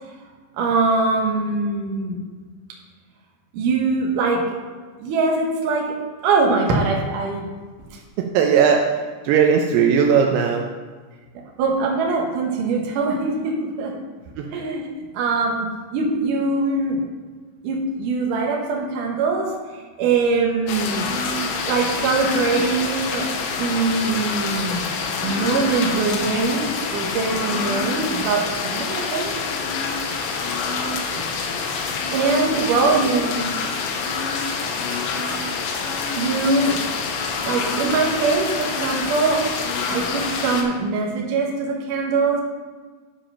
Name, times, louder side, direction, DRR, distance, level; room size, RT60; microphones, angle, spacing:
voice 1, 0.6-2.2 3.5-4.6 5.0-5.9 6.2-7.5 11.6-14.0 14.5-14.8 15.1-17.0 17.6-21.1 21.7-23.3 23.6-24.9 25.2-29.3 32.1-33.6 36.2-36.8 37.5-39.4 39.9-42.4, right 3 dB, 70° right, -1 dB, 2.1 m, -22 dB
voice 2, 8.2-10.7 14.4-14.5 30.9-31.2, right 7 dB, 90° right, 2 dB, 2.2 m, -18 dB
sound 1, 20.7-40.6, left 4 dB, 80° left, 3.0 m, -26 dB
10.5 x 5.0 x 5.6 m, 1.4 s
omnidirectional pair, 5.4 m